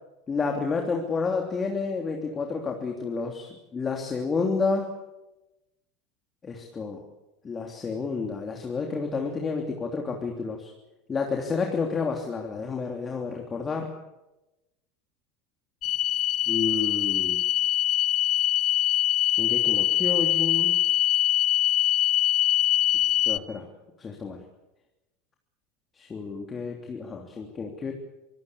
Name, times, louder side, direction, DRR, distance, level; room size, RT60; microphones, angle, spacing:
voice 1, 0.3-4.9 6.4-7.0 7.4-10.7 11.1-13.9 16.5-17.4 19.3-20.8 23.3-23.6 24.0-24.4 26.0-27.9, left 4 dB, 25° left, 2 dB, 3.1 m, -30 dB
sound 1, 15.8-23.4, left 13 dB, 45° left, 0.7 m, -23 dB
24.5 x 17.0 x 8.5 m, 1.0 s
hypercardioid pair, 90°, 0 cm